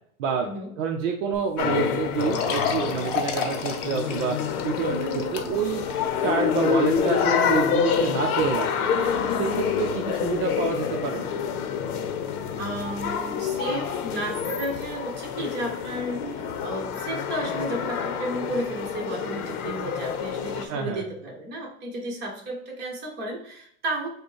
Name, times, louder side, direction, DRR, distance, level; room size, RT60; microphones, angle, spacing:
voice 1, 0.2-4.4 4.6-5.8 6.2-8.9 9.3-11.2 20.7-21.0, right 6 dB, 60° right, 3 dB, 0.7 m, -28 dB
sound 1, 1.3-1.4 1.7-1.8 2.2-5.8 6.3-6.4 6.9-7.0, left 6 dB, 40° left, 0.7 m, -32 dB
sound 2, 1.6-20.7, left 7 dB, 75° left, 0.8 m, -27 dB
voice 2, 12.6-24.1, right 1 dB, 25° right, -1 dB, 1.3 m, -33 dB
5.0 x 2.3 x 4.6 m, 0.68 s
supercardioid pair, 160°, 44 cm